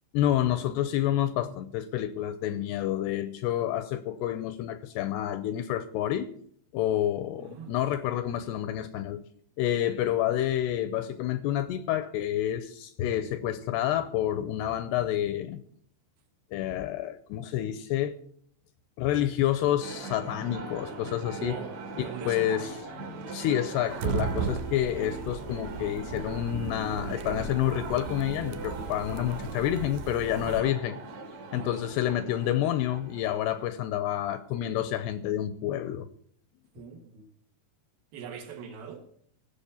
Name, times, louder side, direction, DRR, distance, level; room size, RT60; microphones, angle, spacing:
voice 1, 0.1-6.3 6.7-9.2 9.6-15.6 16.5-18.2 19.0-21.6 22.0-22.7 23.0-31.0 31.5-36.1, left 12 dB, 80° left, 2.4 m, -29 dB
voice 2, 7.4-7.8 21.4-21.8 22.0-22.7 30.4-30.8 31.5-31.9 36.7-37.3 38.1-39.1, right 6 dB, 65° right, 2.7 m, -41 dB
sound 1, 19.8-33.6, right 3 dB, 50° right, 2.3 m, -40 dB
sound 2, 23.9-30.6, right 5 dB, 80° right, 3.0 m, -36 dB
16.5 x 7.2 x 7.0 m
omnidirectional pair, 5.4 m